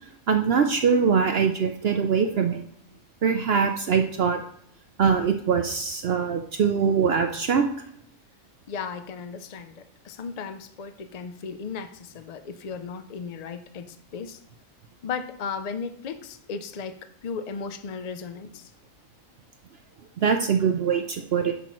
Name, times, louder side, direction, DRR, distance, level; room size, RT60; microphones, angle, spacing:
voice 1, 0.3-2.6 3.2-4.4 5.0-7.6 20.2-21.5, right 6 dB, 60° right, 6 dB, 0.7 m, -22 dB
voice 2, 8.7-14.4 15.0-18.7, left 5 dB, 75° left, 9 dB, 0.3 m, -36 dB
10.0 x 5.9 x 3.0 m, 0.67 s
omnidirectional pair, 1.4 m